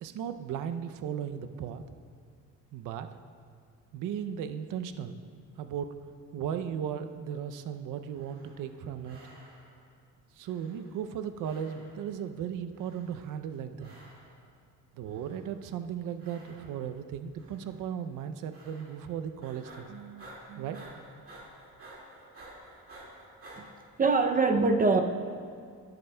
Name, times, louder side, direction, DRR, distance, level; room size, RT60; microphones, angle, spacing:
voice 1, 0.0-1.8 2.7-3.1 3.9-5.2 5.6-6.0 6.3-9.2 10.4-13.9 15.0-20.9, right 8 dB, 70° right, 9 dB, 0.5 m, -36 dB
sound 1, 8.0-8.8 9.0-9.8 10.4-11.2 11.4-12.2 12.7-13.4 13.8-14.4 15.0-15.7 16.2-17.0 17.4-17.8 18.5-19.1 19.4-23.6, right 1 dB, 45° right, 2.1 m, -52 dB
voice 2, 24.0-25.0, right 3 dB, 25° right, 5 dB, 0.5 m, -23 dB
11.0 x 10.5 x 2.2 m, 2.1 s
cardioid pair, 110°, 32 cm